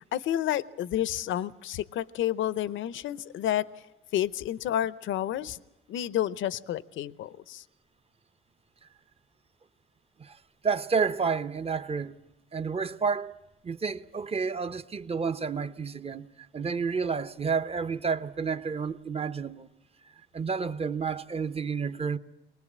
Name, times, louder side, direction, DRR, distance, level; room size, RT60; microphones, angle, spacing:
voice 1, 0.1-3.7 4.1-5.6 5.9-7.6, left 12 dB, 75° left, 0.7 m, -30 dB
voice 2, 10.6-12.1 12.5-13.3 13.6-16.3 16.5-19.7 20.3-22.2, right 5 dB, 30° right, 1.0 m, -30 dB
23.5 x 19.5 x 8.5 m
cardioid pair, 90°, 20 cm